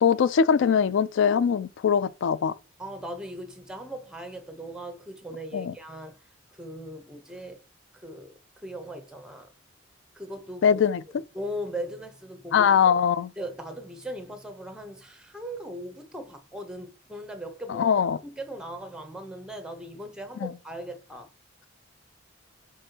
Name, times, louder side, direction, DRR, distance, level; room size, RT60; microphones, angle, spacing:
voice 1, 0.0-2.5 5.5-5.7 10.6-11.0 12.5-13.3 17.7-18.2 20.4-20.5, left 7 dB, 65° left, 0.3 m, -22 dB
voice 2, 2.8-6.2 6.5-7.6 7.9-9.5 10.2-10.8 11.3-12.9 13.4-17.9 18.2-21.3, right 1 dB, 5° right, 0.6 m, -39 dB
5.3 x 3.1 x 2.8 m
head